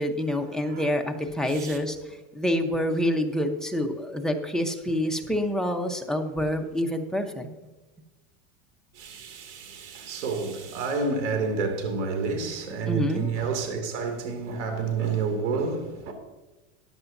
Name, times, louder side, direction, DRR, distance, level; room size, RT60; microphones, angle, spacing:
voice 1, 0.0-7.5 12.9-13.3, equal, ahead, 0.9 m, -27 dB
voice 2, 8.9-16.1, right 4 dB, 90° right, 2.7 m, -29 dB
14.0 x 10.5 x 2.7 m
supercardioid pair, 135°, 34 cm